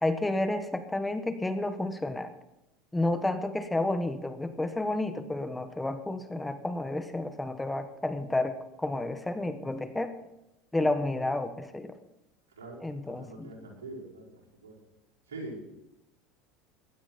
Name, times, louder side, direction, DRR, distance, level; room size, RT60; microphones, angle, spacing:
voice 1, 0.0-2.3 2.9-10.1 10.7-12.0 12.8-13.5, left 2 dB, 10° left, 9 dB, 1.4 m, -31 dB
voice 2, 12.6-14.2 14.6-14.8 15.3-15.8, right 2 dB, 90° right, -3 dB, 5.0 m, -43 dB
16.0 x 11.5 x 4.5 m, 0.88 s
hypercardioid pair, 90°, 0 cm